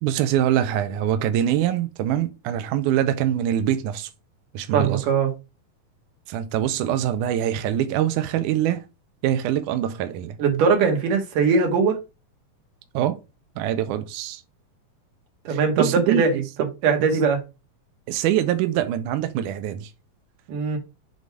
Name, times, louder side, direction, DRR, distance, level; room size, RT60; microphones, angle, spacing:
voice 1, 0.0-4.1 4.5-5.0 6.3-8.8 9.2-10.4 12.9-13.2 13.6-14.4 15.5-16.2 18.1-19.9, right 11 dB, 85° right, 1.8 m, -24 dB
voice 2, 4.7-5.3 10.4-12.0 15.4-15.8 16.2-16.4 16.8-17.4 20.5-20.8, right 5 dB, 65° right, 3.0 m, -20 dB
7.2 x 4.0 x 4.6 m
omnidirectional pair, 4.2 m